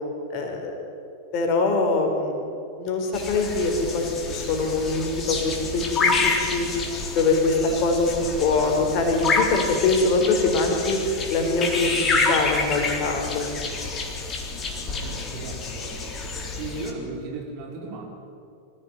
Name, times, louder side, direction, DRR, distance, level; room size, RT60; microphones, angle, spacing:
voice 1, 0.3-0.7 1.3-2.5 2.8-6.7 7.1-11.0 11.3-13.4, left 3 dB, 40° left, 3 dB, 4.8 m, -23 dB
sound 1, 3.1-16.9, left 3 dB, 25° left, 3.7 m, -28 dB
voice 2, 14.9-16.1 16.6-18.0, right 3 dB, 40° right, 0 dB, 5.2 m, -36 dB
25.0 x 16.5 x 9.4 m, 2.6 s
figure-of-eight pair, 90°, 0 cm